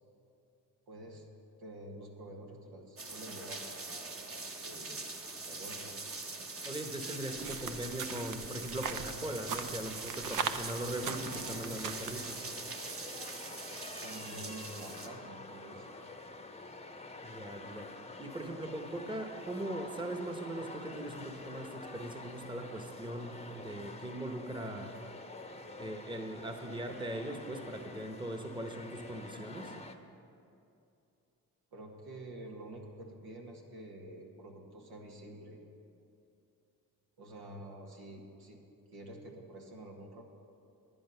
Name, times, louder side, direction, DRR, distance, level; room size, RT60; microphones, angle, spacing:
voice 1, 0.9-1.3 1.6-5.0 5.4-6.0 10.8-12.0 14.0-16.0 31.7-35.6 37.2-38.6 38.9-40.3, right 1 dB, 80° right, 0 dB, 1.7 m, -48 dB
sound 1, 3.0-15.1, right 3 dB, 35° right, 1.3 m, -43 dB
voice 2, 6.6-12.4 17.2-17.9 18.2-24.9 25.8-29.7, right 1 dB, 10° right, 5 dB, 1.2 m, -40 dB
sound 2, 7.4-12.4, right 6 dB, 55° right, 0.7 m, -40 dB
sound 3, 11.0-29.9, left 2 dB, 15° left, 0.9 m, -48 dB
10.5 x 10.5 x 5.7 m, 2.6 s
cardioid pair, 60°, 38 cm